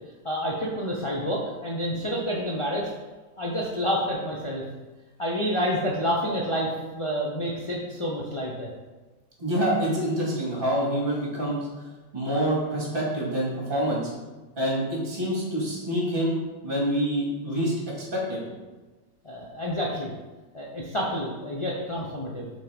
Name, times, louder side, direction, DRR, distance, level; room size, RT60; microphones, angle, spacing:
voice 1, 0.2-2.9 3.4-4.6 5.2-8.7 19.2-20.1 20.5-22.5, equal, 40° left, -4 dB, 0.4 m, -28 dB
voice 2, 9.4-11.9 12.1-14.1 14.6-16.4 16.6-17.7 18.1-18.4, equal, 30° right, -5 dB, 2.2 m, -26 dB
5.8 x 4.4 x 5.3 m, 1.2 s
omnidirectional pair, 1.9 m